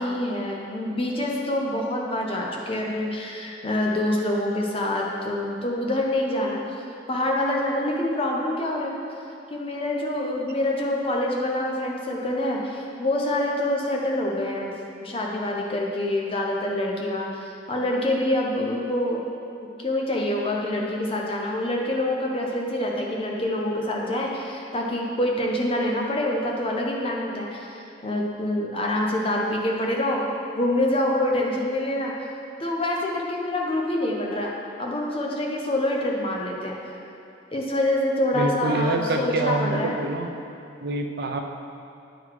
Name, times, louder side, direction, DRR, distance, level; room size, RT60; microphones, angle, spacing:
voice 1, 0.0-6.6 7.1-9.0 9.5-14.7 15.0-19.2 19.8-30.2 30.6-32.3 32.6-34.5 34.8-36.8 37.5-40.0, left 1 dB, 30° left, -1 dB, 0.8 m, -26 dB
voice 2, 38.3-40.3 40.8-41.4, right 2 dB, 55° right, 4 dB, 0.6 m, -26 dB
9.2 x 3.9 x 4.7 m, 2.7 s
head